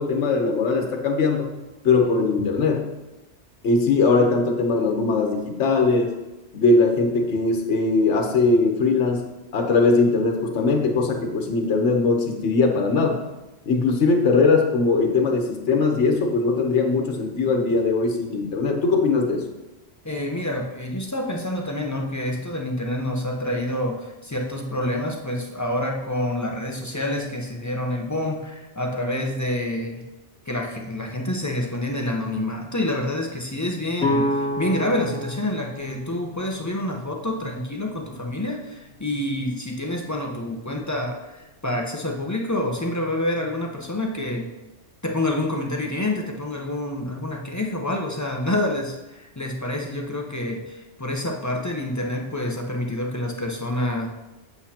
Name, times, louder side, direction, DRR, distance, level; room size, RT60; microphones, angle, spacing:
voice 1, 0.0-1.5 1.8-2.9 3.6-6.2 6.5-13.2 13.6-19.5, left 3 dB, 75° left, 3 dB, 1.3 m, -20 dB
voice 2, 20.0-30.0 30.5-44.5 45.0-54.1, left 1 dB, 15° left, 1 dB, 0.8 m, -27 dB
sound 1, 34.0-37.8, left 1 dB, 50° left, 1.6 m, -29 dB
8.1 x 8.0 x 2.9 m, 1.0 s
omnidirectional pair, 1.2 m